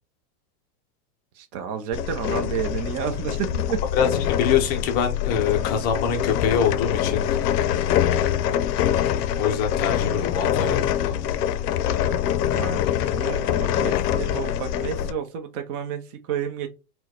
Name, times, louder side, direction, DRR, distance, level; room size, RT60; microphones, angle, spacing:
voice 1, 1.3-3.8 12.5-16.7, right 8 dB, 45° right, 0.7 m, -31 dB
sound 1, 1.9-15.1, left 10 dB, 80° left, 0.6 m, -24 dB
voice 2, 3.9-7.2 9.3-11.3, left 7 dB, 20° left, 0.4 m, -24 dB
4.4 x 2.2 x 4.3 m
supercardioid pair, 150°, 47 cm